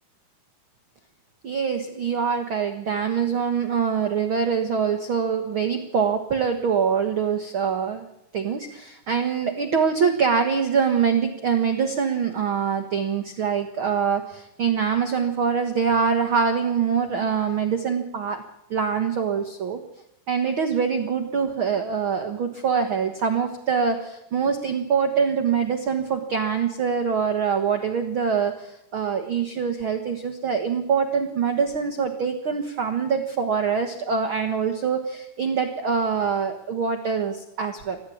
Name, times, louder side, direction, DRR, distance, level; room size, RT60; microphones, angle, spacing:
voice 1, 1.4-8.0 8.3-18.4 18.7-19.8 20.3-38.0, right 6 dB, 60° right, 6 dB, 1.3 m, -24 dB
22.0 x 15.0 x 8.6 m, 0.81 s
omnidirectional pair, 4.4 m